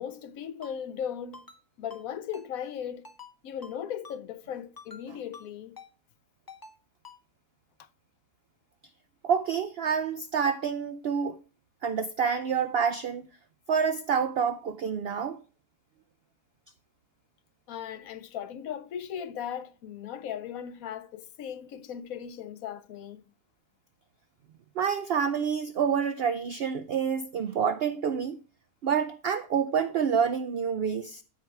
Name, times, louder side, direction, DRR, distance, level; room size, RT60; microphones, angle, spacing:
voice 1, 0.0-1.5 1.8-3.1 3.4-5.8 7.8-7.9 17.7-23.2, left 9 dB, 70° left, 1.1 m, -37 dB
Ringtone, 0.6-0.7 1.3-1.6 1.9-2.0 2.3-2.5 3.0-3.3 3.6-3.7 4.0-4.2 4.8-5.0 5.3-5.5 5.8-5.9 6.5-6.7 7.0-7.2, left 3 dB, 25° left, 0.4 m, -47 dB
voice 2, 9.2-11.4 11.8-13.3 13.7-15.4 24.8-28.4 28.8-31.2, right 7 dB, 90° right, 0.5 m, -28 dB
14.0 x 4.6 x 3.3 m
omnidirectional pair, 1.6 m